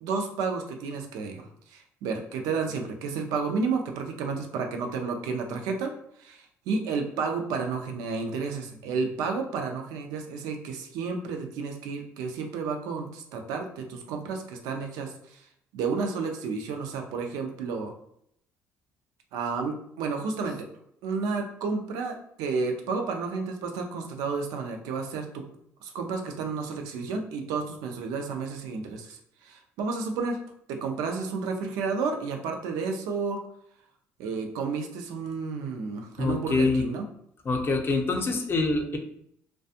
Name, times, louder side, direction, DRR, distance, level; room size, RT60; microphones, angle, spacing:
voice 1, 0.0-5.9 6.2-15.5 15.7-17.9 19.3-20.7 21.0-25.4 25.8-30.4 30.7-33.4 34.2-37.1, right 4 dB, 85° right, 4 dB, 0.5 m, -31 dB
voice 2, 36.2-36.8 37.4-39.0, left 3 dB, 40° left, 3 dB, 0.6 m, -25 dB
2.4 x 2.2 x 2.7 m, 0.71 s
supercardioid pair, 75°, 6 cm